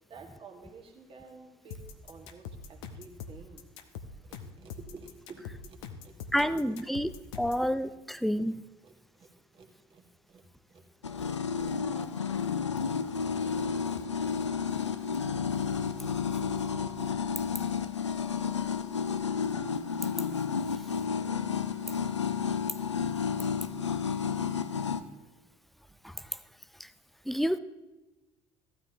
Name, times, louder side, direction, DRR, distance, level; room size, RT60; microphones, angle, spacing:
voice 1, 0.1-3.6 4.2-6.1 7.6-8.5 8.8-9.3 9.5-10.4 10.7-10.8 11.1-11.2 11.5-11.7 11.9-12.1 12.3-12.5 12.9-13.1 13.4-13.5 13.8-13.9 14.2-14.4 15.1-15.2 16.4-16.6 18.9-19.1 20.7-20.9, right 4 dB, 40° right, 2 dB, 1.9 m, -52 dB
sound 1, 1.7-7.7, left 6 dB, 70° left, 0.9 m, -43 dB
voice 2, 6.3-8.6 20.8-20.9 26.0-26.4 26.8-26.9 27.3-27.6, equal, ahead, 13 dB, 0.6 m, -30 dB
sound 2, 11.0-25.0, left 6 dB, 85° left, 0.5 m, -31 dB
15.0 x 12.5 x 2.9 m, 1.1 s
figure-of-eight pair, 60°, 15 cm